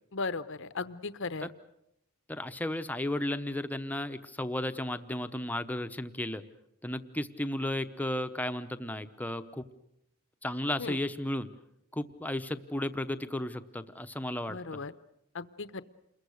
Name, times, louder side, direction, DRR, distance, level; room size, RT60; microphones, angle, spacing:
voice 1, 0.1-1.5 10.8-11.0 14.5-14.9 15.3-15.8, left 4 dB, 60° left, 14 dB, 0.9 m, -36 dB
voice 2, 2.3-6.4 6.8-9.6 10.4-11.5 11.9-14.8, left 1 dB, 10° left, 9 dB, 0.9 m, -34 dB
28.5 x 22.0 x 6.5 m, 0.79 s
head